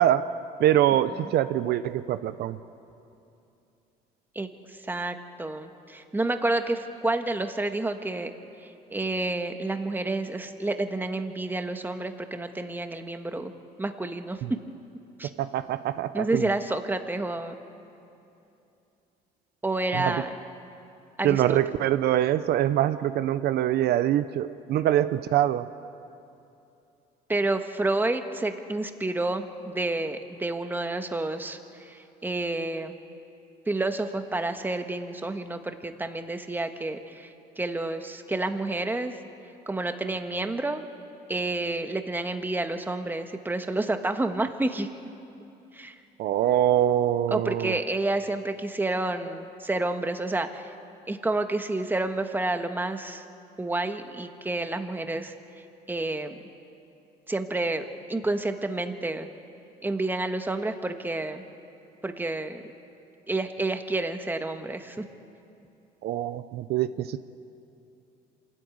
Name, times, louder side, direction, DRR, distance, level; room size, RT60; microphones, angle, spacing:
voice 1, 0.0-2.6 14.4-14.5 15.4-16.5 19.9-20.2 21.2-25.7 46.2-47.8 66.0-67.2, right 12 dB, 70° right, 12 dB, 0.7 m, -24 dB
voice 2, 4.3-8.3 8.6-13.5 13.8-14.4 15.2-15.3 16.1-17.5 19.6-20.3 21.2-21.6 27.3-32.9 33.7-39.2 39.7-40.8 41.3-44.9 45.7-46.0 47.3-50.7 51.1-53.2 53.6-55.3 55.9-56.4 57.3-59.3 59.8-61.4 62.0-62.6 63.3-65.0, right 2 dB, 10° right, 7 dB, 1.4 m, -29 dB
26.5 x 13.5 x 9.5 m, 2.7 s
cardioid pair, 110°, 17 cm